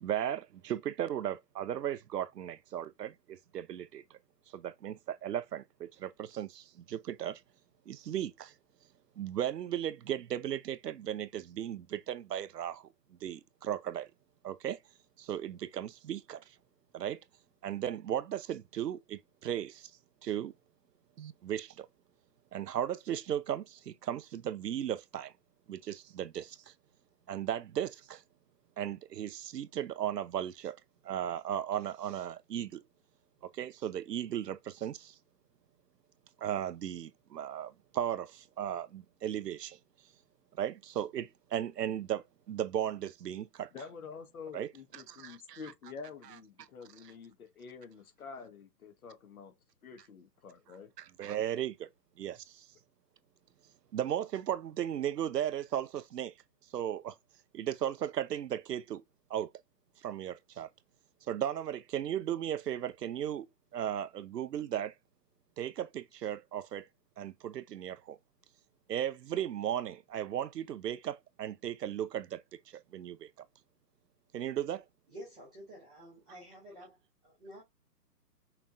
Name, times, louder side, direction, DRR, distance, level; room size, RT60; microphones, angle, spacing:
voice 1, 0.0-4.0 4.5-7.4 7.9-8.5 9.2-12.9 13.2-14.1 14.4-14.8 15.2-16.4 16.9-17.2 17.6-19.9 20.2-20.5 21.2-21.9 22.5-25.3 25.7-26.7 27.3-28.2 28.8-30.8 31.0-32.8 33.4-35.1 36.4-39.8 40.6-43.7 44.5-45.6 51.0-51.9 52.2-52.6 53.9-56.3 56.7-57.2 57.5-59.0 59.3-59.5 60.0-60.7 61.3-63.5 63.7-64.9 65.6-66.9 67.2-68.2 68.9-72.4 72.7-73.3 74.3-74.8, right 10 dB, 75° right, 0.7 m, -36 dB
voice 2, 43.7-49.5 49.8-50.9, left 5 dB, 60° left, 1.5 m, -48 dB
voice 3, 75.1-77.6, equal, 5° right, 0.7 m, -50 dB
5.8 x 3.3 x 2.4 m
hypercardioid pair, 165°, 49 cm